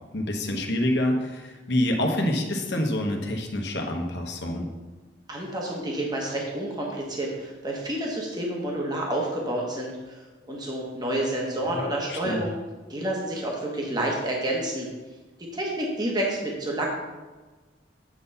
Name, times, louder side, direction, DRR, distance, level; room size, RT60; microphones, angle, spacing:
voice 1, 0.1-4.7 11.7-12.4, left 1 dB, 65° left, 2 dB, 1.2 m, -27 dB
voice 2, 5.3-10.1 10.5-12.5 12.9-14.9 15.5-16.9, right 1 dB, 25° right, -2 dB, 1.3 m, -29 dB
8.5 x 4.1 x 5.6 m, 1.3 s
head